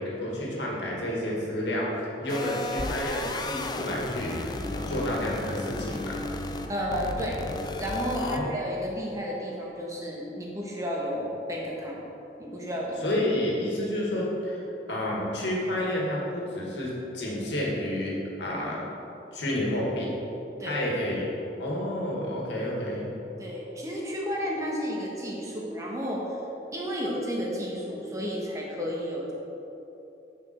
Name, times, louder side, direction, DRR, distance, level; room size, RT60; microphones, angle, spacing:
voice 1, 0.0-1.9 2.2-6.2 8.2-8.7 13.0-14.6 14.9-18.8 19.3-20.1 20.6-21.3 21.6-23.1, left 1 dB, 80° left, -4 dB, 1.8 m, -30 dB
sound 1, 2.3-8.4, left 2 dB, 25° left, 0.4 m, -34 dB
voice 2, 6.7-7.4 7.8-12.0 12.4-13.1 20.6-20.8 23.4-26.3 26.7-29.3, equal, 20° right, -3 dB, 1.3 m, -32 dB
9.1 x 5.4 x 4.3 m, 3.0 s
head